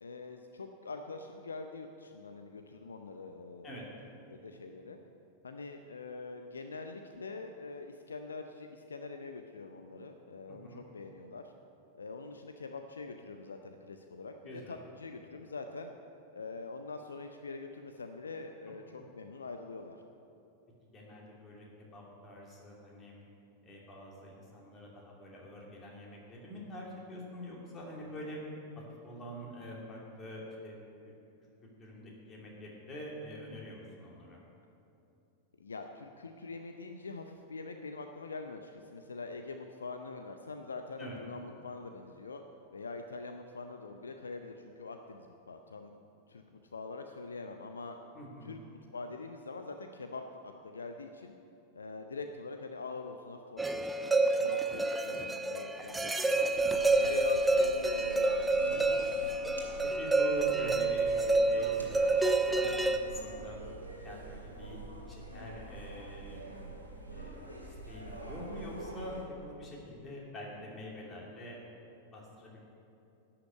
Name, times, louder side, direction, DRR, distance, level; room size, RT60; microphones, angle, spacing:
voice 1, 0.0-3.8 4.3-5.0 5.4-11.5 11.9-15.9 16.3-20.0 28.1-28.2 35.6-42.4 42.7-45.9 46.3-48.0 48.4-48.6 48.9-51.3 51.7-56.4 56.7-58.9 70.5-70.6, left 3 dB, 75° left, 6 dB, 0.5 m, -44 dB
voice 2, 10.5-10.8 14.4-14.8 20.9-21.7 21.9-23.2 23.6-28.4 28.8-30.8 31.0-31.1 31.6-34.4 41.0-41.2 48.1-48.6 56.9-57.1 60.0-63.6 63.9-64.8 65.1-66.6 67.1-71.6 72.1-72.6, equal, 25° left, -3 dB, 2.7 m, -45 dB
sound 1, 53.6-63.0, right 2 dB, 10° right, 0.5 m, -28 dB
sound 2, 56.5-69.2, right 2 dB, 85° right, 1.7 m, -46 dB
11.5 x 5.9 x 8.1 m, 2.8 s
figure-of-eight pair, 90°, 0 cm